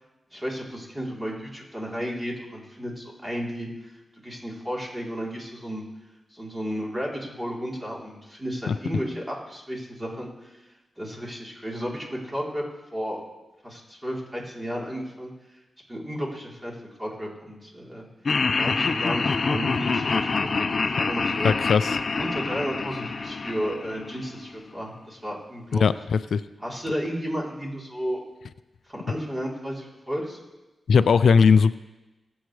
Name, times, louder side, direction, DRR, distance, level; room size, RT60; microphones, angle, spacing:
voice 1, 0.3-3.9 4.2-5.8 6.3-10.6 11.0-12.6 12.9-13.2 13.6-15.3 15.9-18.1 18.6-21.5 22.2-25.8 26.6-28.2 28.9-30.4, equal, 20° right, -3 dB, 3.4 m, -33 dB
Laughter, 18.3-24.4, left 4 dB, 55° left, 0.7 m, -26 dB
voice 2, 21.4-22.0 25.7-26.4 30.9-31.7, left 5 dB, 80° left, 14 dB, 0.3 m, -19 dB
20.5 x 7.9 x 3.2 m, 1.1 s
cardioid pair, 70°, 0 cm